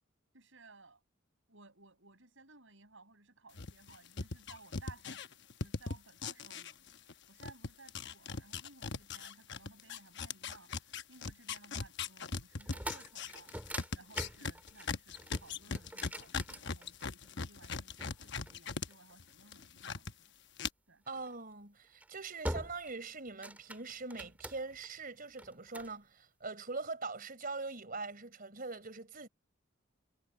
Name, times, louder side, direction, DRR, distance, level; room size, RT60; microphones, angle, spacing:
voice 1, 0.3-1.0 1.5-20.3 20.9-21.0, right 3 dB, 65° right, 7.9 m, -59 dB
sound 1, 3.6-7.1 7.4-18.9 19.2-20.1 20.6-20.7, left 5 dB, 55° left, 1.0 m, -39 dB
sound 2, 12.5-17.3 18.0-19.3 21.1-21.3 21.8-22.1 22.4-23.0 23.3-24.9 25.4-26.0, right 1 dB, 10° right, 2.5 m, -44 dB
voice 2, 21.1-29.3, right 3 dB, 45° right, 4.3 m, -42 dB
head